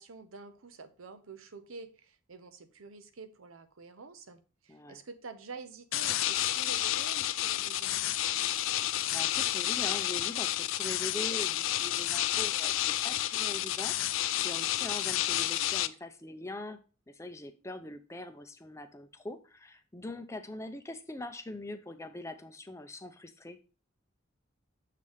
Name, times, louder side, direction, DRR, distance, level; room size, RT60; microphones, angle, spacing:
voice 1, 0.0-8.4, right 4 dB, 90° right, 0.8 m, -48 dB
voice 2, 4.7-5.0 8.9-16.8 17.1-23.6, left 1 dB, 15° left, 0.5 m, -43 dB
sound 1, 5.9-15.9, left 13 dB, 75° left, 0.4 m, -30 dB
6.7 x 3.3 x 5.4 m
head